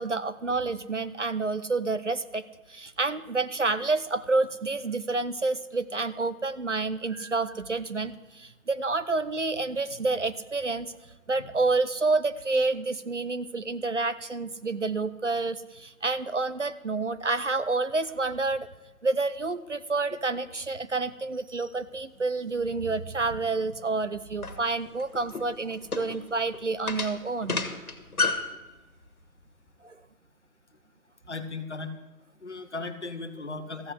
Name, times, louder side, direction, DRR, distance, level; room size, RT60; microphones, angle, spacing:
voice 1, 0.0-2.4 2.7-10.9 11.3-18.7 19.0-27.6 29.8-30.0, right 3 dB, 55° right, 13 dB, 0.6 m, -29 dB
sound 1, 24.4-28.6, left 4 dB, 70° left, 1.9 m, -31 dB
voice 2, 31.3-31.9 32.4-33.9, left 3 dB, 50° left, 8 dB, 1.2 m, -36 dB
14.0 x 7.8 x 8.2 m, 1.1 s
figure-of-eight pair, 175°, 45 cm